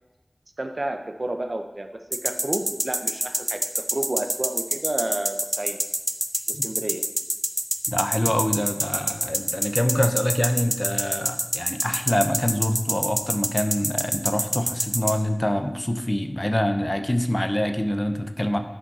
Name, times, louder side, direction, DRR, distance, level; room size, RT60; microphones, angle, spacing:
voice 1, 0.6-5.8 6.5-7.1, right 1 dB, 55° right, 6 dB, 0.8 m, -31 dB
sound 1, 2.1-15.1, right 1 dB, 20° right, 0.6 m, -25 dB
voice 2, 7.9-18.6, left 1 dB, 25° left, 7 dB, 0.7 m, -25 dB
9.9 x 5.2 x 4.1 m, 1.1 s
wide cardioid pair, 40°, 0 cm